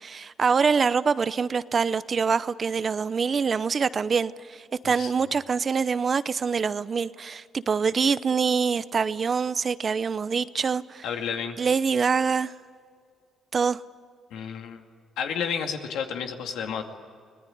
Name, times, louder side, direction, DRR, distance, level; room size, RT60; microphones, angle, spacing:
voice 1, 0.0-11.1 11.6-12.5 13.5-13.8, right 5 dB, 40° right, 16 dB, 0.7 m, -25 dB
voice 2, 11.0-11.6 14.3-14.8 15.2-16.8, left 7 dB, 85° left, 4 dB, 2.4 m, -31 dB
24.5 x 18.5 x 9.4 m, 2.1 s
cardioid pair, 90°, 0 cm